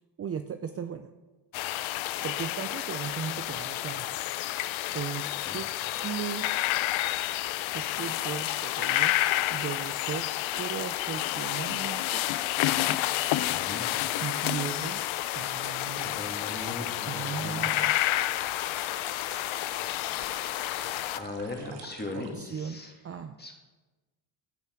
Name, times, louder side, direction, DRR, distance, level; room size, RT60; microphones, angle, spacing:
voice 1, 0.2-1.1 2.2-4.1 4.9-5.7 6.0-6.5 7.7-9.2 9.5-10.3 10.6-12.2 14.2-15.1 15.3-16.2 17.1-18.0 22.1-23.4, right 7 dB, 30° right, 9 dB, 0.5 m, -37 dB
sound 1, 1.5-21.2, left 15 dB, 75° left, 0.6 m, -30 dB
voice 2, 13.5-13.9 16.0-17.6 21.2-22.9 23.4-23.6, left 2 dB, 20° left, 1 dB, 2.4 m, -39 dB
sound 2, 17.2-22.3, right 6 dB, 65° right, 1.6 m, -49 dB
15.5 x 5.6 x 4.6 m, 1.2 s
supercardioid pair, 75°, 47 cm